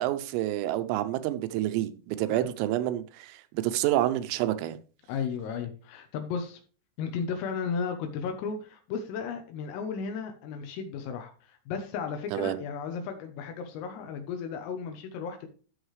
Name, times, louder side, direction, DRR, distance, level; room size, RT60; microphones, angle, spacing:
voice 1, 0.0-4.8 12.3-12.6, right 14 dB, 85° right, 3.4 m, -28 dB
voice 2, 5.1-6.6 7.0-15.5, left 6 dB, 85° left, 3.7 m, -34 dB
13.0 x 6.4 x 3.2 m
omnidirectional pair, 5.9 m